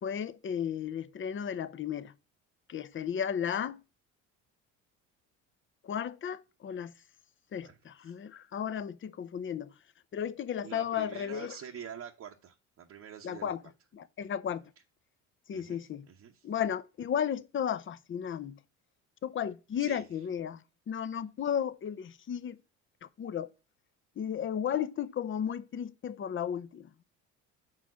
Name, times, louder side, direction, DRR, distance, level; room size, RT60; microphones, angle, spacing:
voice 1, 0.0-2.1 2.7-3.8 5.8-6.9 7.5-9.7 10.1-11.6 13.2-13.6 13.9-14.6 15.5-16.1 16.4-18.6 19.2-22.6 23.2-23.5 24.2-27.0, left 8 dB, 35° left, 0.7 m, -34 dB
voice 2, 10.6-13.5 15.5-16.5 19.8-20.1, right 8 dB, 45° right, 1.0 m, -46 dB
5.5 x 4.7 x 6.2 m
hypercardioid pair, 70°, 35 cm